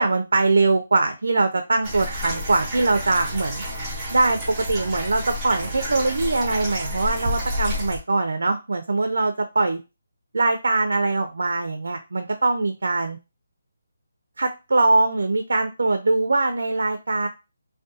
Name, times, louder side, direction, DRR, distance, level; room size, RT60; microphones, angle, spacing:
voice 1, 0.0-3.6 4.1-9.8 10.3-13.2 14.4-17.3, right 3 dB, 80° right, 7 dB, 0.3 m, -22 dB
sound 1, 1.8-8.0, left 1 dB, 10° right, 0.5 m, -30 dB
2.4 x 2.1 x 2.6 m, 0.28 s
hypercardioid pair, 175°, 0 cm